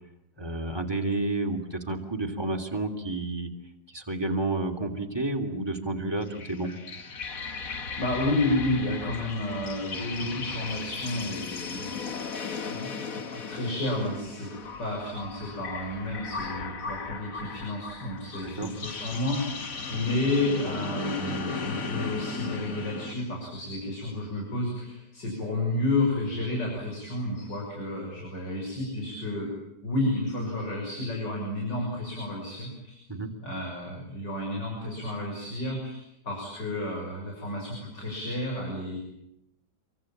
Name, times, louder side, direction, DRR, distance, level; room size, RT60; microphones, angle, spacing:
voice 1, 0.4-3.5 3.9-6.7 18.4-18.7 33.1-33.3, right 2 dB, 15° right, 3 dB, 3.1 m, -30 dB
sound 1, 6.2-23.1, left 4 dB, 55° left, 1.9 m, -36 dB
voice 2, 8.0-12.0 12.3-14.5 14.8-29.5 29.8-33.0 33.4-39.0, left 2 dB, 85° left, -1 dB, 7.2 m, -31 dB
26.5 x 24.0 x 8.8 m, 0.80 s
omnidirectional pair, 1.9 m